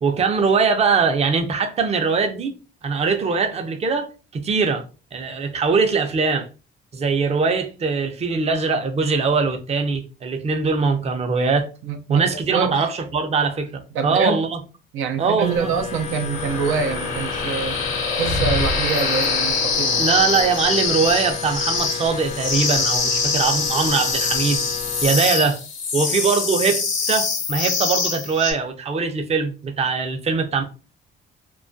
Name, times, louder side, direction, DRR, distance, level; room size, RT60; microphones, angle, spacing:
voice 1, 0.0-2.5 2.8-4.8 5.1-6.5 6.9-11.7 12.1-14.5 15.2-15.7 20.0-24.6 25.0-25.6 25.9-30.6, right 5 dB, 30° right, 0.5 m, -21 dB
voice 2, 11.8-12.8 13.9-14.4 14.9-17.8 18.2-20.0, right 6 dB, 85° right, 0.4 m, -25 dB
sound 1, 15.4-25.2, left 7 dB, 35° left, 0.4 m, -32 dB
sound 2, 16.3-28.5, left 4 dB, 80° left, 0.7 m, -24 dB
2.2 x 2.1 x 2.5 m
cardioid pair, 90°, 20 cm